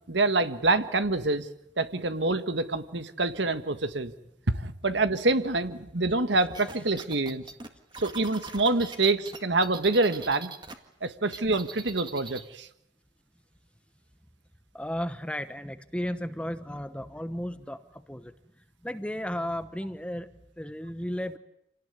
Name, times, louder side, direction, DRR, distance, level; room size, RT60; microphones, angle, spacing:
voice 1, 0.1-1.5 1.8-4.1 4.5-7.4 8.0-10.5 11.0-12.7, right 2 dB, 70° right, 10 dB, 1.6 m, -26 dB
sound 1, 6.5-10.7 11.0-12.5, right 4 dB, 25° right, 1.9 m, -42 dB
voice 2, 14.7-21.4, equal, 5° left, 11 dB, 1.0 m, -34 dB
27.5 x 18.0 x 9.8 m, 0.82 s
head